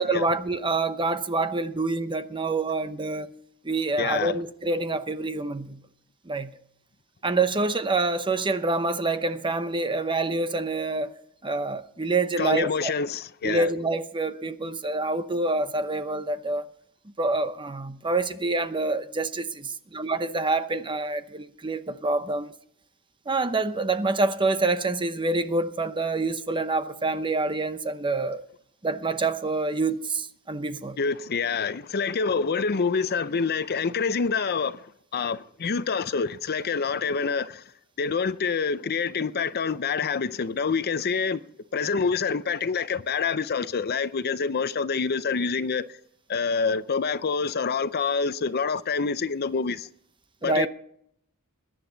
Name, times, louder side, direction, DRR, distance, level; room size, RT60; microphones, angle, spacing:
voice 1, 0.0-3.3 3.6-5.8 6.3-6.5 7.2-11.1 11.4-12.9 13.4-16.6 17.2-22.5 23.3-28.4 28.8-31.0 50.4-50.7, right 3 dB, 20° right, 0.8 m, -26 dB
voice 2, 4.0-4.3 12.4-13.7 31.0-37.6 38.0-41.4 41.7-45.9 46.3-49.9 50.4-50.7, left 5 dB, 45° left, 0.6 m, -27 dB
21.5 x 10.5 x 3.9 m
head